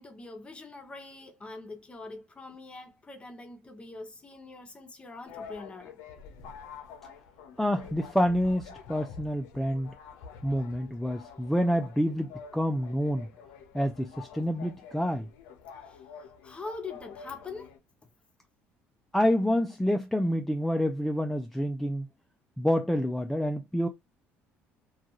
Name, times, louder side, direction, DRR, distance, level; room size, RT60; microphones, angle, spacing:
voice 1, 0.0-6.0 15.8-17.8, left 3 dB, 20° left, 0.7 m, -43 dB
sound 1, 5.2-17.8, left 6 dB, 90° left, 0.5 m, -48 dB
voice 2, 7.6-9.9 10.4-13.3 13.7-15.3 19.1-22.1 22.6-23.9, equal, 5° left, 0.3 m, -28 dB
2.4 x 2.3 x 2.9 m
cardioid pair, 110°, 5 cm